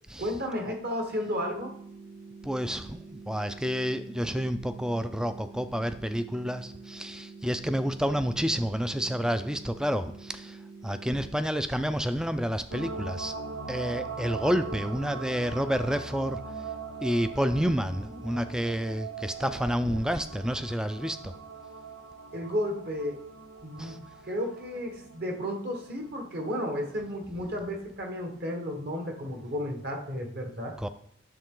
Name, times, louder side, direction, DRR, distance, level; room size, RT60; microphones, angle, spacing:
voice 1, 0.2-1.7 22.3-23.2 23.6-30.7, equal, 45° right, 2 dB, 1.4 m, -33 dB
sound 1, 1.3-11.3, right 4 dB, 85° right, 4.2 m, -47 dB
voice 2, 2.4-10.6 10.8-13.4 13.7-16.4 17.0-21.3 23.8-24.0 30.8-30.9, equal, 5° right, 11 dB, 0.3 m, -29 dB
sound 2, 12.7-28.4 28.8-28.9, right 4 dB, 65° right, 0.9 m, -41 dB
10.5 x 6.8 x 3.8 m, 0.71 s
head